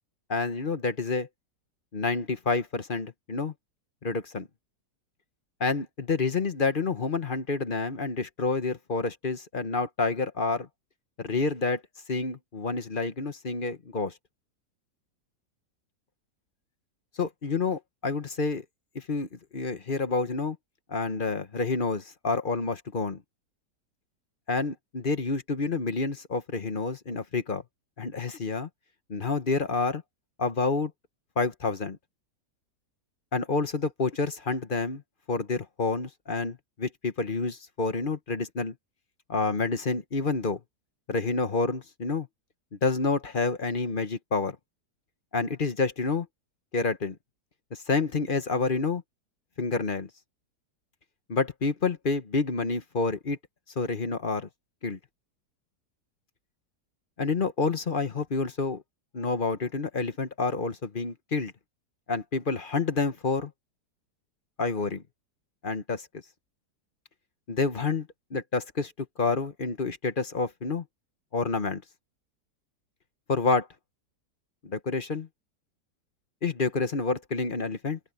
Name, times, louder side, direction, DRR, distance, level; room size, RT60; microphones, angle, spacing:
voice 1, 0.3-1.3 1.9-3.5 4.0-4.5 5.6-10.7 11.2-11.8 12.1-14.1 17.2-18.6 18.9-20.6 20.9-23.2 24.5-27.6 28.0-28.7 29.1-30.0 30.4-30.9 31.4-32.0 33.3-35.0 35.3-38.7 39.3-40.6 41.1-42.3 42.8-44.6 45.3-46.3 46.7-47.2 47.7-49.0 49.6-50.1 51.3-53.4 53.8-54.5 54.8-55.0 57.2-58.8 59.1-61.5 62.1-63.5 64.6-65.0 65.6-66.1 67.5-70.8 71.3-71.8 73.3-73.7 74.6-75.3 76.4-78.0, left 4 dB, 35° left, 1.1 m, -28 dB
open air
omnidirectional pair, 1.8 m